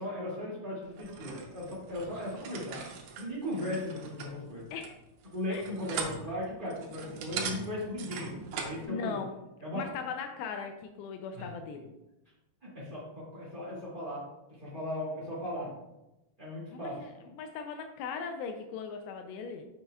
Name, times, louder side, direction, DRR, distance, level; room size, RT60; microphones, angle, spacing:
voice 1, 0.0-2.8 3.2-4.7 5.3-9.2 9.6-9.8 11.3-11.5 12.6-14.2 14.5-15.7 16.4-17.0, left 1 dB, 40° right, -9 dB, 0.7 m, -37 dB
sound 1, 0.9-8.9, right 6 dB, 80° right, 3.0 m, -41 dB
voice 2, 8.9-9.3 9.8-11.9 16.7-19.7, left 5 dB, 85° left, 6 dB, 2.5 m, -39 dB
7.1 x 6.6 x 2.3 m, 0.94 s
omnidirectional pair, 5.1 m